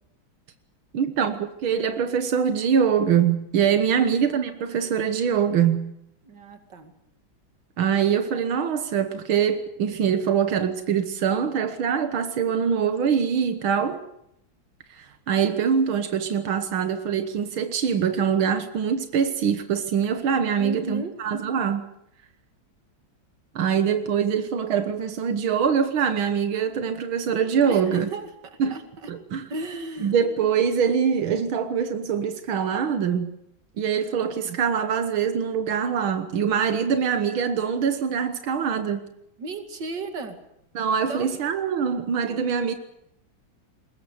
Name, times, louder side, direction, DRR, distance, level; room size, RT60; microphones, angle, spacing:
voice 1, 0.9-5.9 7.8-14.0 14.9-21.8 23.6-28.1 28.6-28.8 29.1-29.4 30.0-33.3 33.8-39.1 40.8-42.7, right 7 dB, 90° right, 2.1 m, -24 dB
voice 2, 6.2-6.9 20.5-21.1 27.7-29.1 29.5-30.1 39.4-40.4 41.1-41.3, right 2 dB, 60° right, 3.0 m, -35 dB
21.5 x 21.0 x 8.1 m
omnidirectional pair, 2.2 m